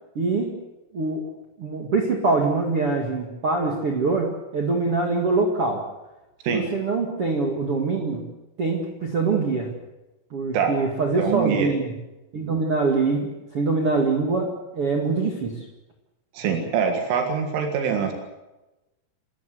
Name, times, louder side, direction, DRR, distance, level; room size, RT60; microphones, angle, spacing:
voice 1, 0.2-0.6 0.9-1.3 1.6-5.8 6.5-8.2 8.6-9.7 10.3-11.9 12.3-15.6, right 3 dB, 45° right, 1 dB, 2.1 m, -24 dB
voice 2, 11.2-11.7 16.3-18.1, right 7 dB, 85° right, 4 dB, 4.3 m, -24 dB
29.0 x 14.0 x 7.9 m, 1.0 s
omnidirectional pair, 5.5 m